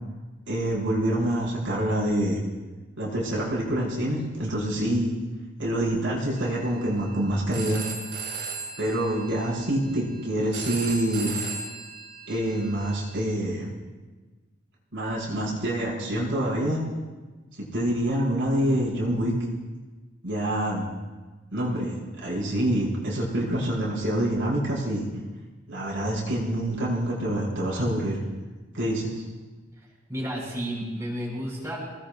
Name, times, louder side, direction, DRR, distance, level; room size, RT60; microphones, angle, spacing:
voice 1, 0.5-2.4 3.0-5.1 5.6-7.8 8.8-11.4 12.3-13.7 14.9-16.8 17.6-19.3 20.2-20.8 21.5-25.1 25.7-28.2 28.7-29.2, right 1 dB, 75° right, -4 dB, 5.9 m, -26 dB
Telephone, 6.4-13.3, right 4 dB, 55° right, 3.3 m, -38 dB
voice 2, 30.1-31.8, equal, 15° right, -5 dB, 6.1 m, -31 dB
27.0 x 19.5 x 2.5 m, 1.3 s
head